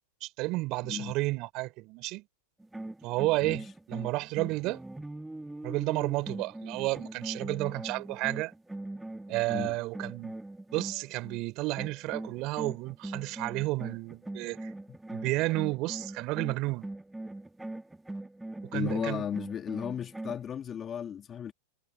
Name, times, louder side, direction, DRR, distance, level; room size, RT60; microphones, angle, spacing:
voice 1, 0.2-2.2 3.0-4.8 5.6-8.5 9.3-10.3 10.7-14.7 15.1-16.9 18.6-19.2, right 21 dB, 45° right, 3.7 m, -31 dB
voice 2, 0.8-1.1 3.4-3.7 9.5-9.8 14.9-15.0 18.7-21.5, left 8 dB, 25° left, 2.1 m, -35 dB
sound 1, 2.6-11.4 11.8-20.5, right 2 dB, 5° right, 1.7 m, -41 dB
hypercardioid pair, 105°, 0 cm